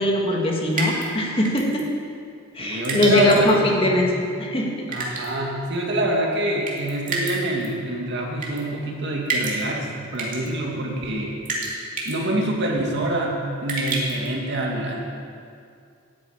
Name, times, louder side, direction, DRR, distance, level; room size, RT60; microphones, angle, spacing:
voice 1, 0.0-1.9 2.5-4.1 4.4-4.9, left 1 dB, 25° left, -1 dB, 2.0 m, -21 dB
sound 1, 0.7-1.0 1.4-1.8 2.8-3.5 4.9-5.3 6.7-7.3 7.6-7.7 8.4-8.6 9.3-9.6 10.1-10.5 11.5-11.7 12.0-12.2 13.7-14.3, right 3 dB, 40° right, 2.4 m, -27 dB
voice 2, 2.6-4.1 4.9-11.3 12.0-15.0, right 1 dB, 60° right, -1 dB, 2.3 m, -26 dB
10.0 x 9.0 x 8.9 m, 2.3 s
head